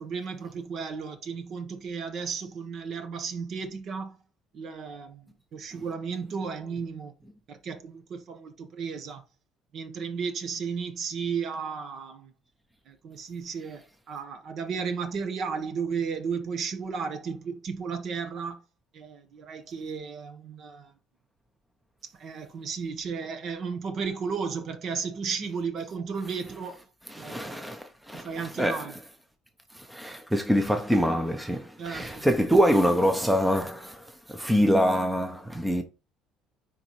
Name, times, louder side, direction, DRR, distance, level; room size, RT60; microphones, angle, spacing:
voice 1, 0.0-4.2 4.5-7.1 7.5-9.2 9.7-12.3 12.9-18.6 18.9-20.9 22.0-26.8 27.2-27.5 28.1-28.9 31.8-32.2, right 5 dB, 45° right, 1.2 m, -34 dB
voice 2, 27.1-28.3 28.6-28.9 29.7-35.8, equal, 5° right, 0.8 m, -25 dB
9.9 x 4.0 x 3.2 m
cardioid pair, 150°, 0 cm